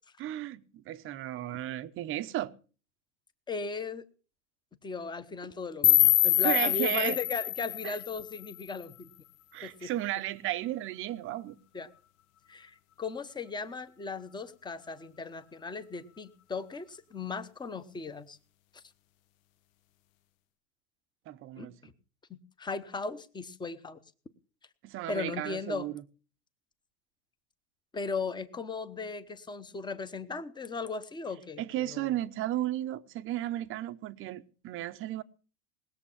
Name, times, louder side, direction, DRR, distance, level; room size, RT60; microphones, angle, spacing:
voice 1, 0.2-2.5 6.4-7.2 7.8-8.0 9.5-11.6 21.3-21.7 24.8-26.0 31.6-35.2, right 14 dB, 30° right, 0.8 m, -34 dB
voice 2, 3.5-4.1 4.8-9.1 9.6-9.9 11.7-11.9 12.5-18.4 18.7-18.8 21.6-21.9 22.3-24.0 25.1-25.9 27.9-32.1, left 4 dB, 10° left, 1.0 m, -37 dB
sound 1, 5.8-8.8, left 15 dB, 60° left, 1.1 m, -25 dB
20.0 x 7.5 x 7.3 m
supercardioid pair, 140°, 45 cm